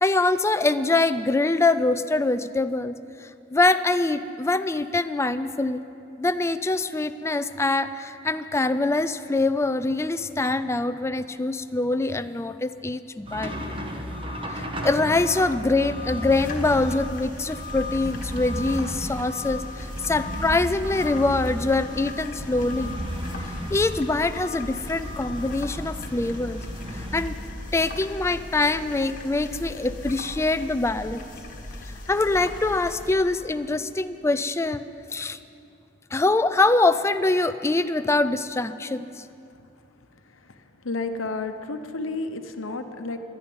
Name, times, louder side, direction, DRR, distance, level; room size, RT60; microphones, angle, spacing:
voice 1, 0.0-5.8 6.2-13.6 14.5-22.9 23.7-26.6 26.9-27.4 27.7-31.2 32.1-34.9 35.1-35.4 36.1-39.2, left 2 dB, 15° left, 11 dB, 0.3 m, -24 dB
sound 1, 13.2-27.2, equal, 25° right, 1.2 m, -34 dB
sound 2, 16.3-33.1, left 2 dB, 45° left, 1.3 m, -39 dB
voice 2, 40.8-43.2, left 3 dB, 80° left, 8 dB, 0.9 m, -31 dB
11.0 x 10.5 x 9.5 m, 2.6 s
head